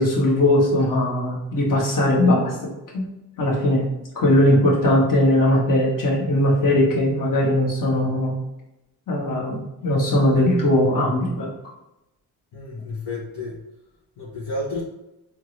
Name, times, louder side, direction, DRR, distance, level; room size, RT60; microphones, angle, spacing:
voice 1, 0.0-2.5 2.9-3.0 3.4-3.8 4.1-8.3 9.1-11.5, left 1 dB, 45° left, -3 dB, 1.2 m, -19 dB
voice 2, 12.5-13.6 14.2-14.8, left 2 dB, 65° left, -6 dB, 1.0 m, -31 dB
3.5 x 2.0 x 3.0 m, 0.90 s
supercardioid pair, 55°, 44 cm